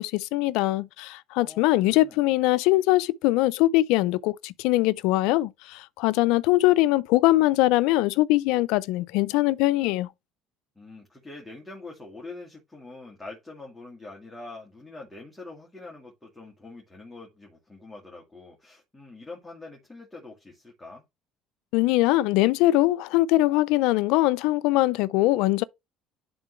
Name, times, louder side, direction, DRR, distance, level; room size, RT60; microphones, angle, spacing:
voice 1, 0.0-10.1 21.7-25.6, left 18 dB, 80° left, 0.4 m, -22 dB
voice 2, 1.4-2.2 10.8-21.0, left 3 dB, 10° left, 2.2 m, -44 dB
11.0 x 3.8 x 3.1 m
cardioid pair, 110°, 0 cm